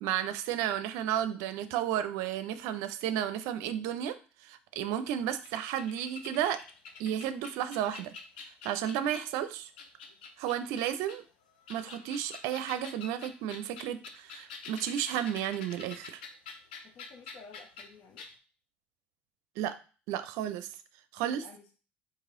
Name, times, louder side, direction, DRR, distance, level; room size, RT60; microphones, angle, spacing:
voice 1, 0.0-4.1 4.4-6.6 7.0-8.1 8.6-9.7 10.4-11.2 11.7-16.2 19.6-19.8 20.1-20.8 21.1-21.4, right 10 dB, 70° right, 11 dB, 0.5 m, -33 dB
sound 1, 5.1-9.4 9.8-11.2 11.6-17.9 18.2-18.3, left 4 dB, 85° left, 0.6 m, -47 dB
voice 2, 16.8-18.2 21.2-21.7, left 5 dB, 60° left, 2 dB, 1.0 m, -53 dB
4.7 x 3.0 x 3.7 m, 0.36 s
hypercardioid pair, 65°, 5 cm